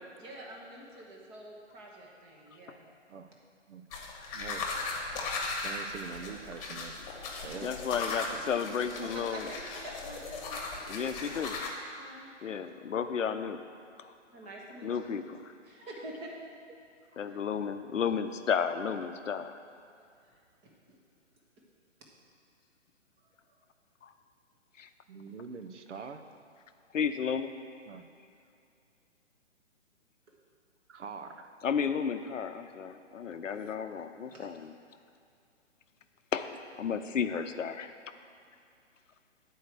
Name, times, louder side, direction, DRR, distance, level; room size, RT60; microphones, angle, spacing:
voice 1, 0.1-2.8 8.9-11.5 12.0-12.3 14.3-15.2 15.6-16.3 17.1-17.4 20.6-21.0 34.3-34.5, right 1 dB, 15° right, -2 dB, 0.9 m, -47 dB
sound 1, 3.9-11.7, left 3 dB, 30° left, 1.2 m, -37 dB
voice 2, 5.6-7.0 7.4-7.7 8.3-8.4 25.1-26.2 27.9-28.1 30.9-31.5, right 6 dB, 70° right, 7 dB, 0.8 m, -43 dB
voice 3, 7.6-9.5 10.9-11.6 12.4-13.6 14.0-14.1 14.8-15.5 17.2-19.6 24.0-24.1 24.8-24.9 26.9-27.5 31.6-34.7 36.3-36.5 36.8-37.9, left 7 dB, 85° left, 9 dB, 0.7 m, -33 dB
9.3 x 4.6 x 6.6 m, 2.5 s
hypercardioid pair, 145°, 37 cm